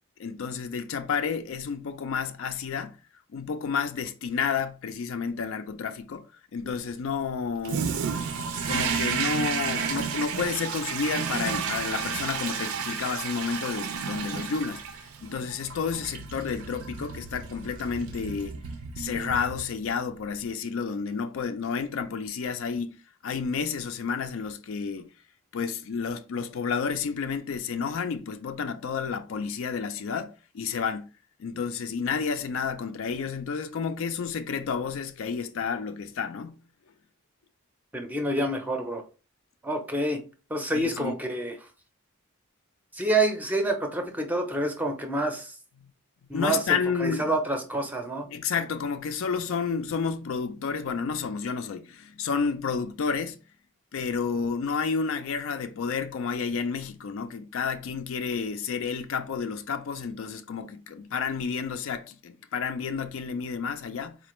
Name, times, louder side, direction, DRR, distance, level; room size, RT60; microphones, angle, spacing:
voice 1, 0.2-3.0 3.3-6.3 6.5-7.9 8.7-14.8 15.2-18.6 19.0-25.1 25.5-31.1 31.4-36.6 40.7-41.2 46.3-47.3 48.3-53.4 53.9-64.2, left 5 dB, 60° left, 0.4 m, -30 dB
Toilet flush, 7.6-20.0, right 6 dB, 70° right, 0.5 m, -32 dB
voice 2, 37.9-39.0 39.6-40.2 40.5-41.5 42.9-45.6 46.3-48.3, right 1 dB, 10° right, 0.5 m, -28 dB
4.0 x 2.5 x 3.0 m
head